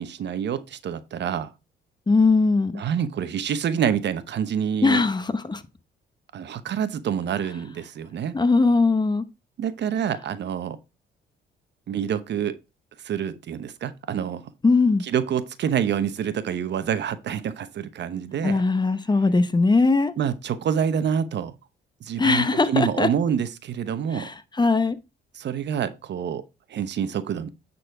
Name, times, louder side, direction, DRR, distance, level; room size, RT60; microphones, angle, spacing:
voice 1, 0.0-1.5 2.7-5.0 6.3-8.4 9.6-10.8 11.9-12.6 13.0-14.4 15.0-18.6 20.2-21.5 22.0-24.3 25.3-26.4 26.7-27.5, right 8 dB, 60° right, 0.9 m, -27 dB
voice 2, 2.1-2.8 4.8-5.6 8.3-9.2 14.6-15.0 18.4-20.1 22.2-23.1 24.1-25.0, left 3 dB, 20° left, 0.9 m, -20 dB
9.4 x 4.2 x 4.7 m
cardioid pair, 90°, 20 cm